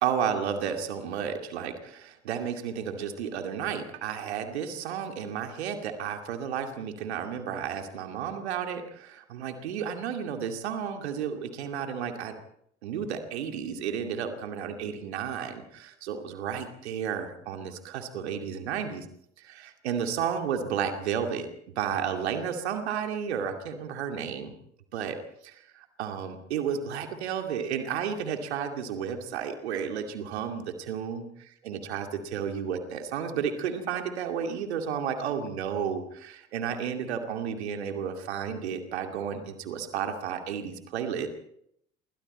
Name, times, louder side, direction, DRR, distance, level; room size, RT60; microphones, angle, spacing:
voice 1, 0.0-12.4 12.8-19.1 19.4-21.5 21.8-24.5 24.9-25.2 25.4-31.3 31.6-32.1 32.3-41.3, right 7 dB, 75° right, 6 dB, 2.5 m, -32 dB
27.0 x 23.5 x 4.3 m, 0.72 s
figure-of-eight pair, 60°, 33 cm